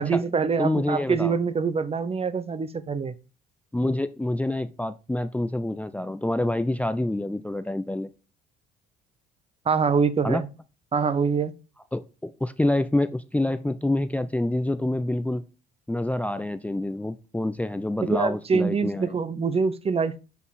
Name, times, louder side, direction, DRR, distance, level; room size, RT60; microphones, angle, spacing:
voice 1, 0.0-3.1 9.7-10.5 10.9-11.5 18.0-20.2, right 5 dB, 30° right, 0.8 m, -24 dB
voice 2, 0.6-1.3 3.7-8.1 10.2-10.4 11.9-15.4 15.9-19.1, left 1 dB, 5° left, 0.6 m, -27 dB
7.9 x 5.1 x 4.2 m
hypercardioid pair, 60°, 21 cm